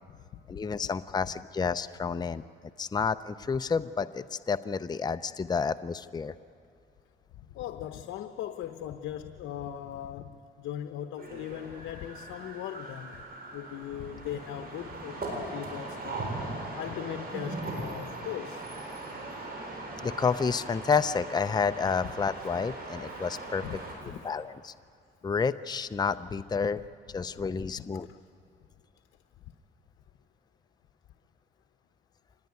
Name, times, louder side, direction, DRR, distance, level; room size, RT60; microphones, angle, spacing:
voice 1, 0.5-2.4 2.8-6.3 20.0-23.6 24.0-24.7 25.2-26.8 27.1-28.1, left 5 dB, 20° left, 12 dB, 0.6 m, -30 dB
voice 2, 7.5-13.2 13.5-16.3 16.8-18.6 23.6-23.8 24.1-24.2 27.6-27.7 27.9-28.2, left 11 dB, 85° left, 8 dB, 0.8 m, -39 dB
sound 1, 11.2-23.9, right 2 dB, 50° right, 7.1 m, -39 dB
25.5 x 20.0 x 9.6 m, 2.4 s
cardioid pair, 90°, 20 cm